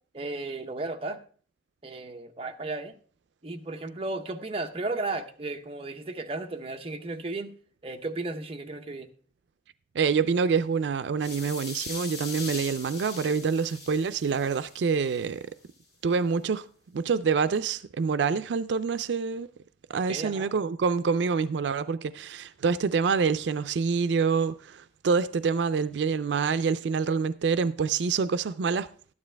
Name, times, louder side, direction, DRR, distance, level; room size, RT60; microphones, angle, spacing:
voice 1, 0.1-1.2 1.8-2.9 3.4-7.5 7.8-9.1 19.9-20.5, right 2 dB, 35° right, 0.8 m, -34 dB
voice 2, 9.9-15.4 16.0-16.7 16.9-19.5 19.9-28.9, right 5 dB, 85° right, 0.4 m, -26 dB
sound 1, 11.2-15.3, left 4 dB, 65° left, 2.7 m, -41 dB
12.5 x 9.7 x 3.3 m
head